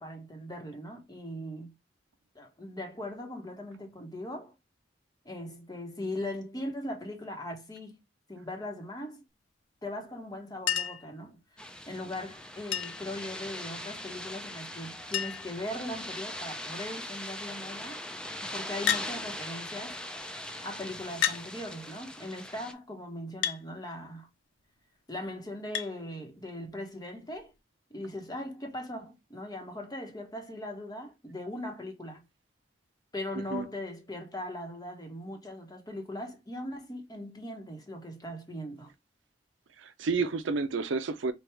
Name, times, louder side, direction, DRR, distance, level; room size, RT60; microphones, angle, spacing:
voice 1, 0.0-1.7 2.3-4.5 5.2-8.0 8.3-9.2 9.8-11.4 11.9-18.0 18.5-20.0 20.6-24.3 25.1-27.5 27.9-32.2 33.1-38.9, left 1 dB, 20° left, 1.0 m, -39 dB
Chink clink, 10.7-11.1 12.7-13.1 14.5-14.6 14.8-14.9 15.1-15.6 16.3-16.7 18.9-19.1 20.2-20.3 21.2-21.4 23.4-23.6 25.7-25.9 27.3-27.4, left 10 dB, 90° left, 0.5 m, -30 dB
sound 1, 11.6-22.7, left 1 dB, 5° left, 0.4 m, -41 dB
voice 2, 33.3-33.7 39.8-41.3, right 4 dB, 80° right, 0.5 m, -30 dB
4.5 x 2.3 x 3.3 m
head